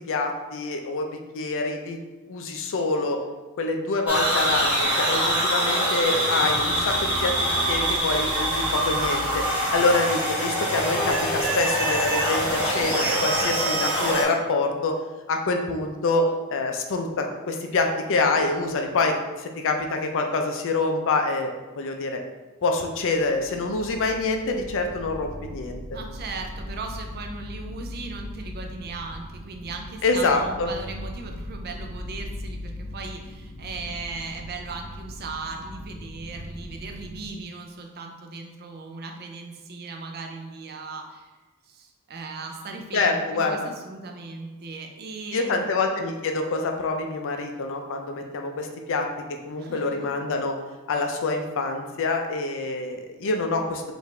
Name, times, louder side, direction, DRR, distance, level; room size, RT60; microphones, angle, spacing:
voice 1, 0.1-1.1 1.3-2.0 2.3-3.2 3.6-9.4 9.7-15.0 15.3-16.2 16.5-22.2 22.6-25.8 30.0-30.7 42.9-43.7 45.3-49.1 49.5-50.5 50.9-53.8, left 3 dB, 60° left, 4 dB, 0.5 m, -26 dB
sound 1, 4.1-14.2, right 1 dB, 5° right, 1.4 m, -24 dB
sound 2, 23.0-37.3, left 1 dB, 15° left, 0.6 m, -39 dB
voice 2, 25.9-41.3 41.7-45.6 49.6-50.1, right 3 dB, 45° right, 3 dB, 0.5 m, -38 dB
4.6 x 2.6 x 3.2 m, 1.2 s
head